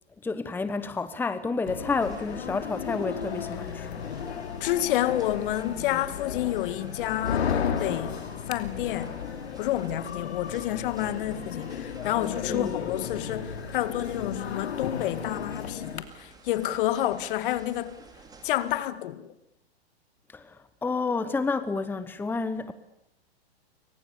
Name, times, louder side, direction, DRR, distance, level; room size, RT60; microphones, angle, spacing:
voice 1, 0.2-3.9 12.5-12.7 20.3-20.6 20.8-22.7, left 4 dB, 5° left, 1.0 m, -30 dB
sound 1, 1.7-16.0, left 7 dB, 75° left, 2.9 m, -34 dB
sound 2, 2.0-18.8, right 3 dB, 10° right, 5.0 m, -51 dB
voice 2, 4.6-8.2 8.5-9.1 9.6-18.0 18.4-19.3, left 13 dB, 55° left, 2.0 m, -29 dB
28.5 x 24.5 x 7.1 m
hypercardioid pair, 125°, 32 cm